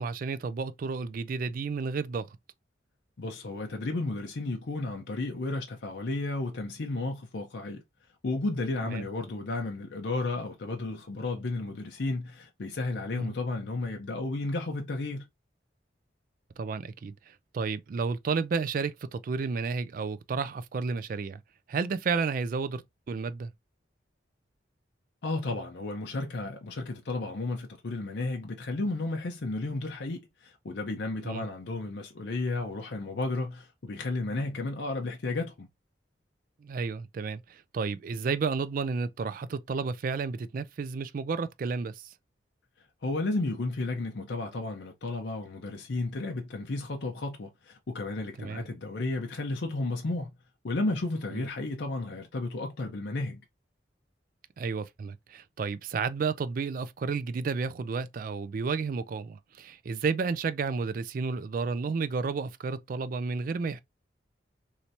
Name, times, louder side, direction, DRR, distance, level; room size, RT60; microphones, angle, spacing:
voice 1, 0.0-2.4 8.8-9.1 13.2-13.3 16.6-21.4 21.7-23.5 31.2-31.5 36.6-42.1 48.4-48.6 51.3-51.4 54.6-63.8, right 5 dB, 45° right, 0.3 m, -32 dB
voice 2, 3.2-7.8 8.2-15.3 25.2-35.7 43.0-50.3 50.6-53.4, left 2 dB, 65° left, 0.6 m, -33 dB
3.2 x 2.8 x 2.6 m
head